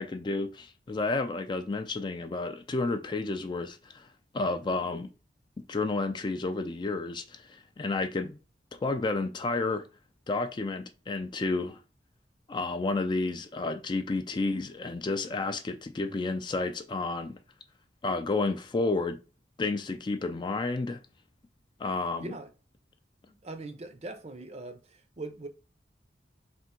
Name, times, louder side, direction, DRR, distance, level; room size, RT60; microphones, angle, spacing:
voice 1, 0.0-4.1 4.3-5.1 5.7-8.4 8.7-9.8 10.3-11.8 12.5-17.4 18.0-19.2 19.6-21.0 21.8-22.3, left 3 dB, 25° left, 0.3 m, -31 dB
voice 2, 22.2-22.5 23.2-25.5, right 2 dB, 35° right, 0.6 m, -41 dB
3.5 x 2.9 x 4.3 m
head